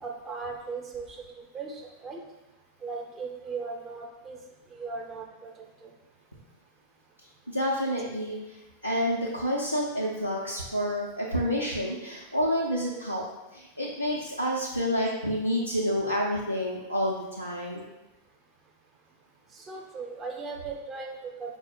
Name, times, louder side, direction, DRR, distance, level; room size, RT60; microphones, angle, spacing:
voice 1, 0.0-1.1 1.5-2.2 2.8-4.4 4.7-5.5 5.8-5.9 19.7-21.6, right 4 dB, 20° right, 0 dB, 0.8 m, -37 dB
voice 2, 7.5-13.2 13.5-17.8, equal, 90° left, -5 dB, 0.5 m, -29 dB
4.8 x 2.0 x 4.6 m, 1.0 s
figure-of-eight pair, 90°, 0 cm